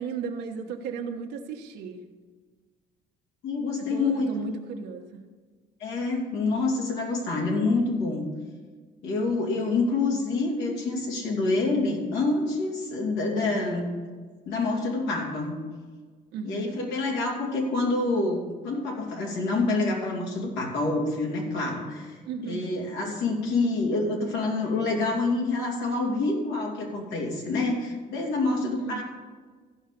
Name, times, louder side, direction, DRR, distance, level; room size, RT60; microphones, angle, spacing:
voice 1, 0.0-2.0 3.8-5.2 16.3-16.9 22.2-22.7 28.5-29.0, right 6 dB, 80° right, 3 dB, 1.3 m, -35 dB
voice 2, 3.4-4.3 5.8-8.3 9.0-13.9 14.5-15.6 16.4-18.4 18.6-22.2 22.4-29.0, left 3 dB, 85° left, -1 dB, 2.8 m, -27 dB
14.5 x 5.5 x 6.9 m, 1.5 s
cardioid pair, 110°, 17 cm